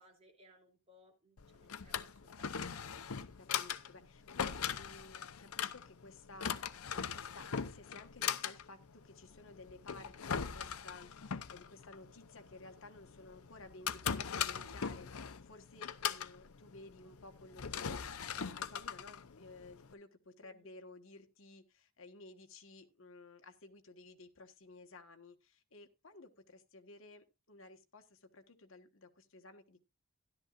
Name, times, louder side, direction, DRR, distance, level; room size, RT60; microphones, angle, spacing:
voice 1, 0.0-3.0 3.3-3.4 20.4-20.7, equal, 30° right, 1 dB, 3.0 m, -65 dB
Drawer open or close, 1.4-19.9, left 7 dB, 85° left, 0.7 m, -40 dB
voice 2, 3.4-29.8, left 2 dB, 65° left, 5 dB, 1.4 m, -55 dB
13.5 x 11.5 x 2.5 m, 0.25 s
head